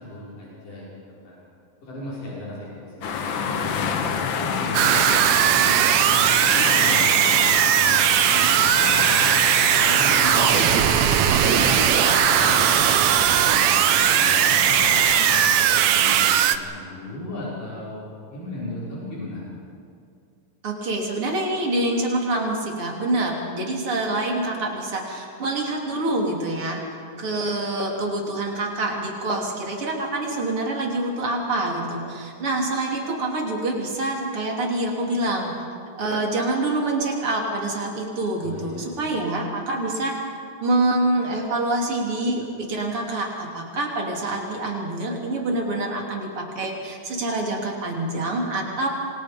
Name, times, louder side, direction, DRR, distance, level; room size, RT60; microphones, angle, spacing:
voice 1, 0.0-1.4 1.8-3.9 4.4-7.4 7.6-9.4 9.8-13.0 13.4-14.4 15.2-18.0 18.3-19.5 38.4-39.3, left 1 dB, 85° left, -7 dB, 7.8 m, -37 dB
sound 1, 3.0-15.7, left 6 dB, 60° left, 1.3 m, -28 dB
sound 2, 4.7-16.6, right 10 dB, 70° right, 1.9 m, -18 dB
voice 2, 20.6-26.8 27.2-35.6 36.0-40.2 40.6-48.9, right 2 dB, 45° right, 0 dB, 4.0 m, -26 dB
27.5 x 25.5 x 5.3 m, 2.3 s
omnidirectional pair, 3.7 m